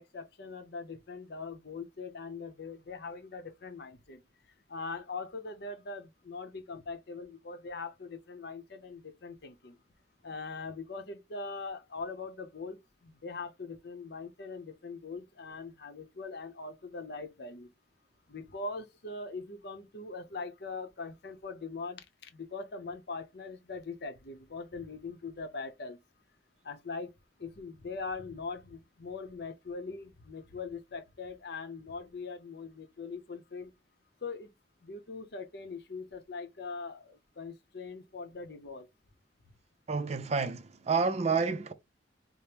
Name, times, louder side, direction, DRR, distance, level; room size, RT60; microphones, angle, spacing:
voice 1, 0.0-4.2 4.7-9.8 10.2-17.7 18.3-26.0 26.6-27.1 27.4-33.7 34.2-34.5 34.8-38.9, left 4 dB, 65° left, 0.7 m, -41 dB
voice 2, 39.9-41.7, right 4 dB, 40° right, 0.4 m, -29 dB
5.0 x 2.0 x 2.9 m
head